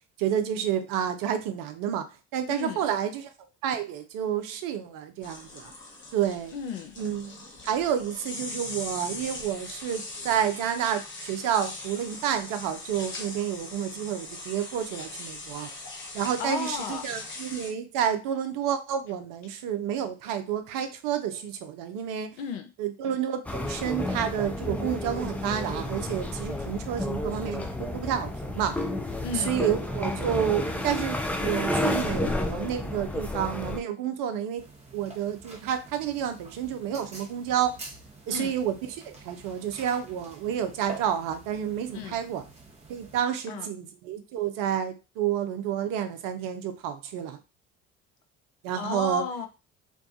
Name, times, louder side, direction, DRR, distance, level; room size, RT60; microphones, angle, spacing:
voice 1, 0.2-3.3 3.6-5.7 6.1-6.5 7.0-15.7 16.1-22.3 22.8-28.8 29.3-34.6 34.9-37.8 38.3-42.4 42.9-47.4 48.6-49.2, right 9 dB, 60° right, 8 dB, 0.6 m, -30 dB
voice 2, 2.5-2.8 6.5-7.0 16.4-17.0 22.4-22.7 29.2-29.6 38.3-38.5 41.9-42.2 43.5-43.7 48.8-49.5, left 6 dB, 80° left, 7 dB, 0.6 m, -34 dB
sound 1, 5.2-17.7, left 2 dB, 30° left, 1.0 m, -40 dB
sound 2, 23.5-33.8, left 1 dB, 5° left, 0.3 m, -31 dB
sound 3, 34.6-43.2, right 3 dB, 15° right, 0.8 m, -47 dB
2.6 x 2.3 x 2.5 m, 0.29 s
hypercardioid pair, 60°, 37 cm